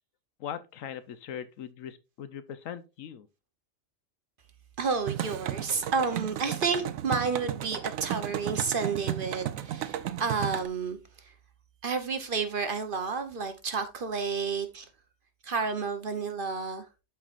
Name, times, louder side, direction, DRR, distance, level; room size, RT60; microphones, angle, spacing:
voice 1, 0.4-3.3, left 9 dB, 80° left, 1.1 m, -40 dB
voice 2, 4.8-11.0 11.8-14.9 15.4-16.8, right 5 dB, 45° right, 1.0 m, -30 dB
sound 1, 5.1-10.7, right 11 dB, 85° right, 1.0 m, -34 dB
12.5 x 4.6 x 2.5 m
omnidirectional pair, 1.4 m